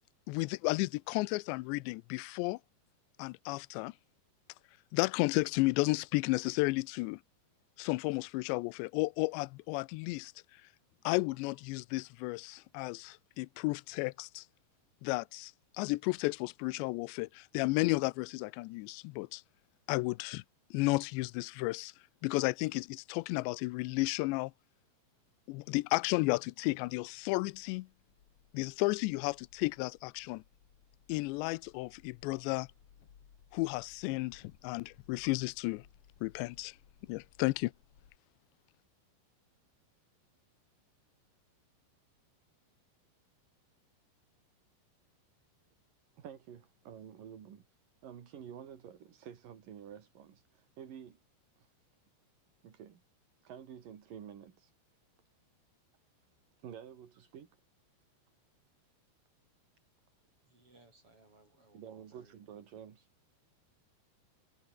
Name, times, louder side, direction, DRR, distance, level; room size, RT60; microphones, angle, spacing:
voice 1, 0.3-2.6 3.2-3.9 4.9-7.2 7.8-10.3 11.0-14.4 15.0-15.5 15.8-19.4 19.9-20.4 20.7-21.9 22.2-24.5 25.5-27.9 28.5-30.4 31.1-32.7 33.5-35.8 36.2-36.8 37.1-37.7, left 23 dB, 85° left, 2.8 m, -33 dB
sound 1, 27.1-38.2, left 8 dB, 45° left, 2.0 m, -64 dB
voice 2, 46.2-47.7 48.0-51.2 51.6-51.7 52.6-53.0 53.4-54.7 56.6-57.5 61.7-63.1, right 8 dB, 55° right, 3.9 m, -50 dB
voice 3, 60.4-62.4, right 2 dB, 30° right, 7.3 m, -64 dB
omnidirectional pair, 5.1 m